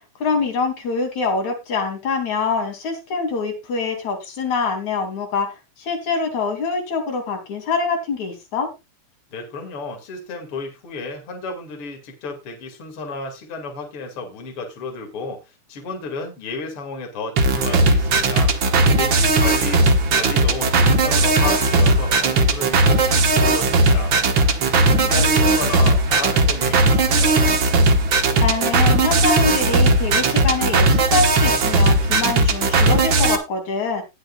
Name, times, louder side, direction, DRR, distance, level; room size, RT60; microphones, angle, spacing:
voice 1, 0.2-8.7 24.9-25.3 28.4-34.0, left 4 dB, 70° left, 2 dB, 4.1 m, -24 dB
voice 2, 9.3-27.6, left 4 dB, 50° left, 3 dB, 3.0 m, -33 dB
sound 1, 17.4-33.4, right 2 dB, 50° right, 1.8 m, -17 dB
19.0 x 6.7 x 2.4 m, 0.24 s
omnidirectional pair, 3.4 m